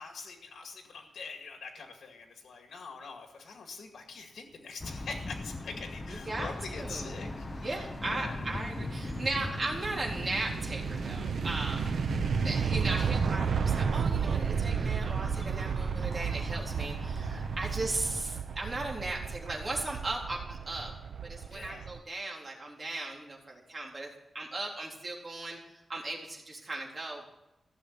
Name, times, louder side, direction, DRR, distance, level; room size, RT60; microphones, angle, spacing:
voice 1, 0.0-7.7 8.0-8.4 21.5-21.9, left 4 dB, 85° left, 3 dB, 2.1 m, -44 dB
sound 1, 4.8-18.2, left 2 dB, 25° left, 0.8 m, -41 dB
voice 2, 6.0-7.1 7.6-20.9 21.2-24.1 24.3-27.2, right 2 dB, 30° right, -2 dB, 3.7 m, -37 dB
sound 2, 6.7-22.0, right 6 dB, 75° right, 0.8 m, -33 dB
16.5 x 6.9 x 8.9 m, 0.90 s
wide cardioid pair, 145°, 0 cm